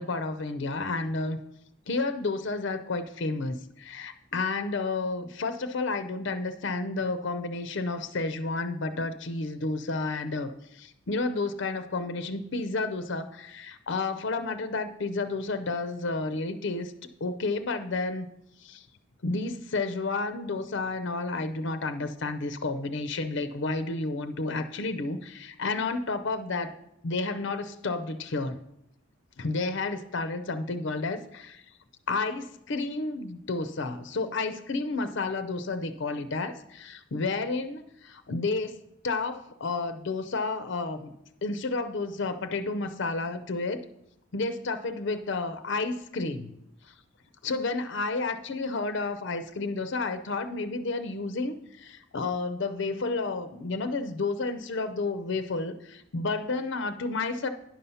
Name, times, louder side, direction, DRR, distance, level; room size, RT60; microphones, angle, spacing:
voice 1, 0.0-1.4 1.9-16.9 17.2-18.3 18.6-18.9 19.2-26.8 27.0-28.6 29.4-31.6 32.1-41.1 41.4-43.9 44.3-46.5 47.4-57.5, left 3 dB, 60° left, 10 dB, 0.5 m, -31 dB
10.0 x 5.5 x 5.6 m, 0.79 s
head